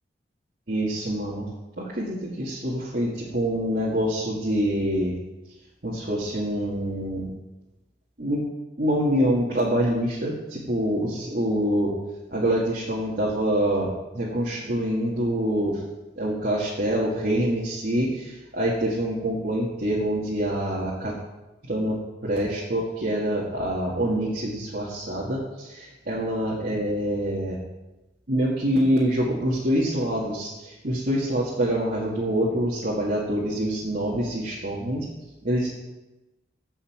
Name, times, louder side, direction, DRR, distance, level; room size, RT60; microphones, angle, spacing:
voice 1, 0.7-1.5 1.8-5.1 5.8-7.3 8.2-8.4 8.8-11.9 12.3-15.8 16.2-21.1 21.7-27.6 28.3-35.1 35.4-35.7, equal, 55° right, -6 dB, 1.9 m, -26 dB
15.0 x 5.6 x 5.9 m, 1.0 s
head